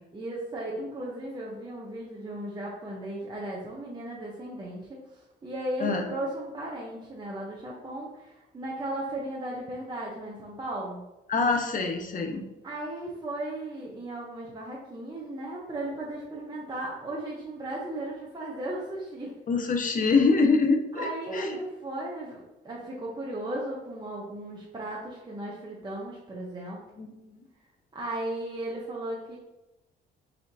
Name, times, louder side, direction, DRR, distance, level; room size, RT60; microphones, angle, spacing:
voice 1, 0.1-11.0 12.6-19.3 20.9-26.8 27.9-29.4, right 1 dB, 20° right, -4 dB, 0.9 m, -36 dB
voice 2, 11.3-12.4 19.5-21.6 27.0-27.4, left 4 dB, 40° left, 4 dB, 0.8 m, -25 dB
4.3 x 4.3 x 2.7 m, 0.98 s
cardioid pair, 90°, 20 cm